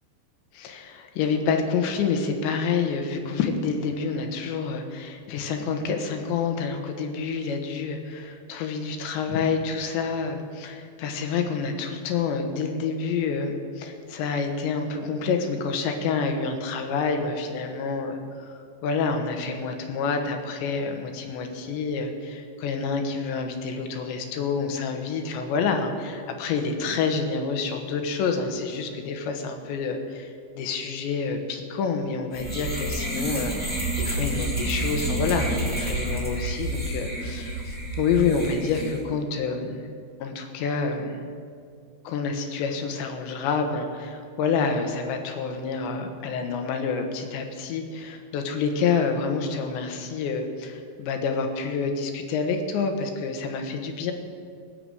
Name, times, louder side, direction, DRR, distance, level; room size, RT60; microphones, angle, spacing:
voice 1, 0.5-39.8 40.2-41.3 42.1-54.1, left 5 dB, 90° left, 5 dB, 3.5 m, -28 dB
sound 1, 32.3-39.0, right 1 dB, 5° left, 1.1 m, -29 dB
19.0 x 6.9 x 7.8 m, 2.2 s
omnidirectional pair, 5.0 m